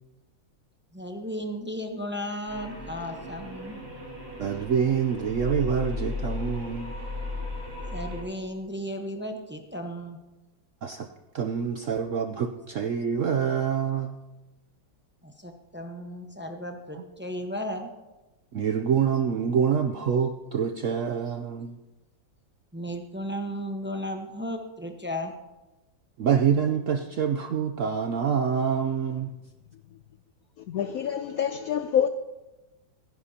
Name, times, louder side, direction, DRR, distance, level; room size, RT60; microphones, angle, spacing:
voice 1, 0.9-3.8 7.9-10.2 15.2-17.9 22.7-25.3, equal, 10° right, 4 dB, 0.5 m, -35 dB
sound 1, 2.5-8.2, left 2 dB, 40° right, 3.4 m, -36 dB
voice 2, 4.4-6.9 10.8-11.1 11.3-14.2 18.5-21.8 26.2-29.3, right 7 dB, 80° right, 7 dB, 0.7 m, -26 dB
voice 3, 30.7-32.1, left 9 dB, 80° left, 9 dB, 0.8 m, -26 dB
26.0 x 10.5 x 2.8 m, 1.1 s
omnidirectional pair, 2.0 m